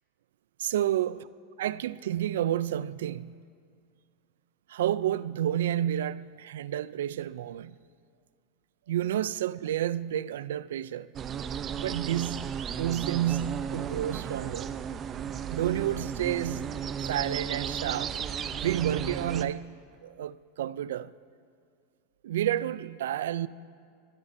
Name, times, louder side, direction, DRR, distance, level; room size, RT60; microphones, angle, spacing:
voice 1, 0.6-1.2 1.6-3.4 4.7-7.8 8.9-11.1 11.4-11.5 11.8-14.7 15.5-18.1 18.6-21.1 22.2-23.5, right 11 dB, 85° right, 0.3 m, -30 dB
sound 1, 11.1-19.4, right 8 dB, 30° right, 0.5 m, -34 dB
25.5 x 12.0 x 2.6 m
supercardioid pair, 135°, 0 cm